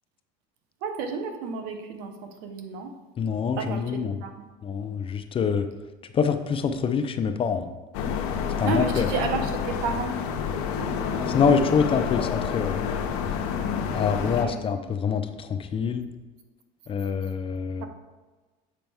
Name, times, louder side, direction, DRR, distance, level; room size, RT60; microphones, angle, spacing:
voice 1, 0.8-2.9 3.6-4.3 8.6-10.1 14.2-14.6 17.8-17.9, right 5 dB, 80° right, 6 dB, 1.0 m, -31 dB
voice 2, 3.2-4.2 4.6-5.7 6.1-7.7 8.6-9.1 11.3-12.8 13.9-16.1 16.9-17.8, left 6 dB, 30° left, 8 dB, 0.5 m, -25 dB
sound 1, 7.9-14.5, left 7 dB, 85° left, 0.8 m, -28 dB
7.5 x 5.2 x 3.5 m, 1.2 s
supercardioid pair, 120°, 19 cm